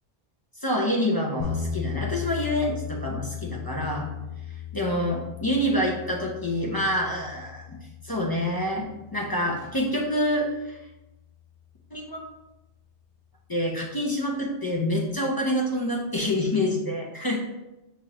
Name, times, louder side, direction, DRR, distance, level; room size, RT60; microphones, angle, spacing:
voice 1, 0.6-4.1 4.7-7.8 8.0-10.8 11.9-12.2 13.5-17.4, left 1 dB, 30° left, -2 dB, 0.4 m, -27 dB
sound 1, 1.4-11.4, left 7 dB, 80° left, 0.9 m, -37 dB
5.9 x 2.9 x 2.9 m, 0.98 s
omnidirectional pair, 1.2 m